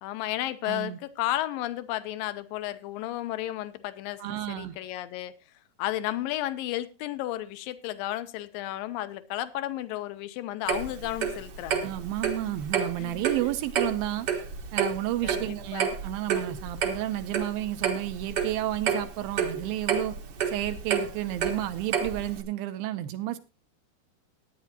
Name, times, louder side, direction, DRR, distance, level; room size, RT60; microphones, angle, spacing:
voice 1, 0.0-5.3 5.8-11.9 13.0-13.3 15.2-15.9, left 14 dB, 75° left, 2.2 m, -33 dB
voice 2, 0.6-1.0 4.2-4.8 11.8-14.3 14.7-20.2 20.5-23.4, right 14 dB, 75° right, 2.4 m, -31 dB
Clock, 10.7-22.4, right 7 dB, 60° right, 1.5 m, -30 dB
18.5 x 9.4 x 2.9 m
omnidirectional pair, 4.5 m